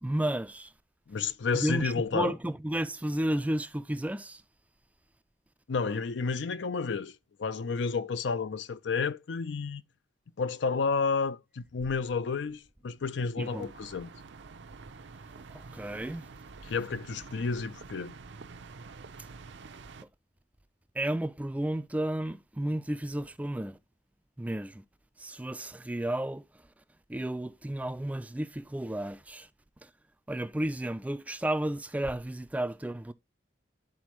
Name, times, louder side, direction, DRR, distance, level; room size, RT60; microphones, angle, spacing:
voice 1, 0.0-0.7 1.5-4.4 13.4-13.7 15.5-16.3 20.9-23.8 24.4-24.8 25.2-26.4 27.1-29.5 29.8-29.9 30.3-33.1, right 1 dB, 10° right, 0.3 m, -32 dB
voice 2, 1.1-2.3 5.7-9.8 10.4-14.1 16.7-18.1, left 4 dB, 80° left, 0.5 m, -31 dB
sound 1, 13.4-20.0, right 4 dB, 75° right, 0.6 m, -48 dB
11.5 x 4.2 x 3.0 m
head